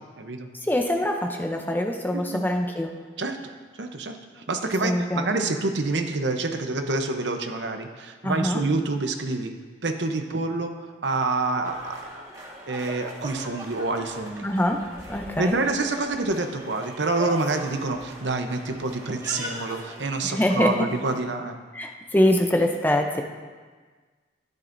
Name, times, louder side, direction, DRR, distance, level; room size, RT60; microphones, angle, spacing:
voice 1, 0.0-0.5 2.1-2.4 3.2-3.4 3.8-9.5 9.8-12.0 12.7-14.5 15.4-21.5, right 3 dB, 65° right, 6 dB, 0.8 m, -27 dB
voice 2, 0.5-2.9 4.8-5.3 8.2-8.6 14.4-15.6 20.2-20.9 21.7-23.2, left 1 dB, 10° left, 3 dB, 0.6 m, -24 dB
sound 1, 11.6-21.3, equal, 15° right, 1.6 m, -40 dB
13.0 x 10.5 x 2.6 m, 1.4 s
head